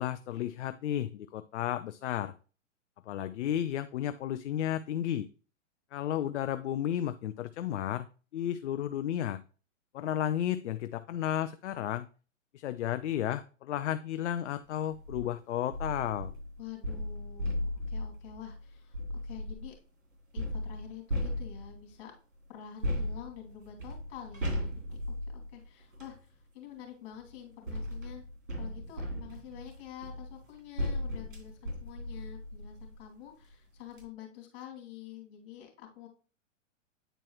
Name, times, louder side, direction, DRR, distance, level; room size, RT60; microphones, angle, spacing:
voice 1, 0.0-2.3 3.1-5.3 5.9-8.1 8.3-9.4 9.9-12.1 12.5-16.3, left 11 dB, 65° left, 11 dB, 0.5 m, -33 dB
sound 1, 14.9-15.2 15.7-19.8 20.4-21.9 22.8-26.2 27.1-33.1 33.5-33.6 33.9-34.0, left 1 dB, 85° right, 3.2 m, -36 dB
voice 2, 16.6-19.0 19.2-19.7 20.3-22.1 22.5-24.7 25.3-28.2 28.6-36.1, left 10 dB, 45° left, 1 dB, 2.7 m, -47 dB
9.0 x 4.5 x 3.0 m, 0.36 s
hypercardioid pair, 125°, 38 cm